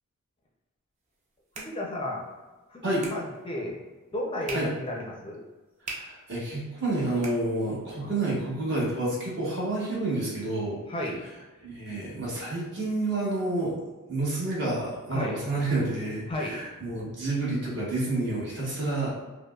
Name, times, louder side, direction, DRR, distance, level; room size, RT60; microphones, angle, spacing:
sound 1, 1.0-8.0, right 3 dB, 35° right, 0.6 m, -46 dB
voice 1, 1.6-2.3 2.7-3.8 4.1-5.4 8.0-8.1 10.9-11.3 15.1-15.4 16.3-16.6, left 1 dB, 25° left, -1 dB, 0.5 m, -33 dB
voice 2, 5.8-10.8 11.6-13.8 14.1-19.1, right 2 dB, 55° right, -6 dB, 1.3 m, -29 dB
5.0 x 2.1 x 2.3 m, 1.2 s
head